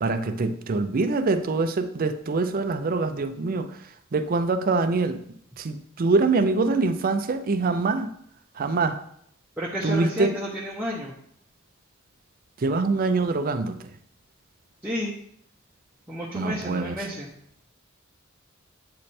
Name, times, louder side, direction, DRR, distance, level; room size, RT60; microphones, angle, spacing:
voice 1, 0.0-3.8 4.1-5.2 5.6-8.1 8.6-9.0 9.8-10.4 12.6-13.7 16.3-16.9, right 3 dB, 45° right, 9 dB, 0.5 m, -24 dB
voice 2, 9.6-11.2 14.8-15.1 16.1-17.3, equal, 10° right, -6 dB, 0.7 m, -31 dB
8.5 x 3.3 x 4.2 m, 0.69 s
head